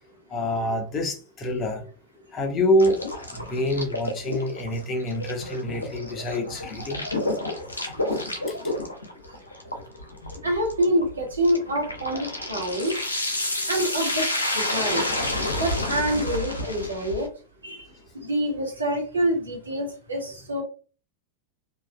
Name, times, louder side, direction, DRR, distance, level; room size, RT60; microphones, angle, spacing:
voice 1, 0.3-1.9 2.3-3.0 3.3-7.1 8.5-8.6, left 1 dB, 25° left, 0.7 m, -26 dB
sound 1, 2.8-17.3, left 1 dB, 80° left, 0.7 m, -30 dB
voice 2, 10.4-13.0 13.7-14.3 14.5-15.0 15.6-17.3 17.6-17.9 18.2-20.6, equal, 75° right, 1.3 m, -26 dB
3.2 x 2.5 x 2.2 m
figure-of-eight pair, 90°, 0 cm